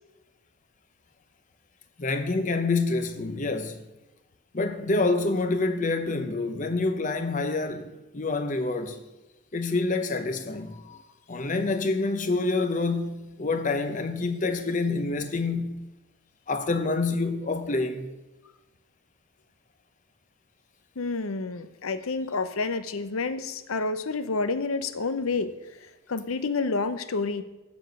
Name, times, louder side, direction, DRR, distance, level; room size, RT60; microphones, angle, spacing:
voice 1, 2.0-3.8 4.5-9.0 9.5-11.0 11.3-15.8 16.5-18.1, left 3 dB, 35° left, 0.7 m, -27 dB
voice 2, 21.0-25.6 26.1-27.4, left 3 dB, 85° left, 0.7 m, -29 dB
7.9 x 7.1 x 6.5 m
head